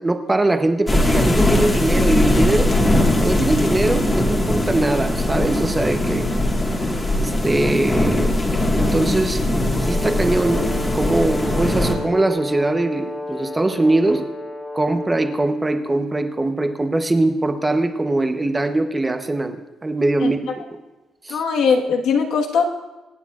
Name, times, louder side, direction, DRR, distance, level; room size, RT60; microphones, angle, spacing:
voice 1, 0.0-2.7 3.2-6.3 6.6-6.7 7.1-8.4 8.8-9.4 9.8-14.3 14.7-20.8 21.2-21.4, right 2 dB, 15° right, 7 dB, 0.8 m, -21 dB
sound 1, 0.9-12.0, left 1 dB, 20° left, 1.6 m, -20 dB
Brass instrument, 9.7-15.7, left 2 dB, 35° left, 2.0 m, -32 dB
voice 2, 21.3-22.7, left 5 dB, 70° left, 2 dB, 1.4 m, -19 dB
26.0 x 9.6 x 2.4 m, 1.1 s
cardioid pair, 145°, 0 cm